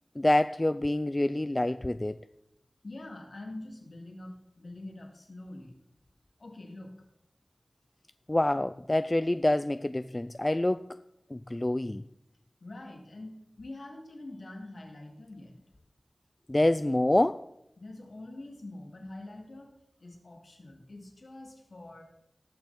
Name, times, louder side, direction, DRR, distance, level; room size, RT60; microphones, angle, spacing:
voice 1, 0.2-2.3 8.3-11.0 11.3-12.0 16.5-17.5, left 1 dB, 25° left, 0.3 m, -27 dB
voice 2, 2.8-5.7 6.4-6.9 12.6-15.5 17.8-19.7 20.0-22.0, left 2 dB, 65° left, 2.3 m, -45 dB
18.5 x 6.1 x 4.2 m
wide cardioid pair, 50°, 0 cm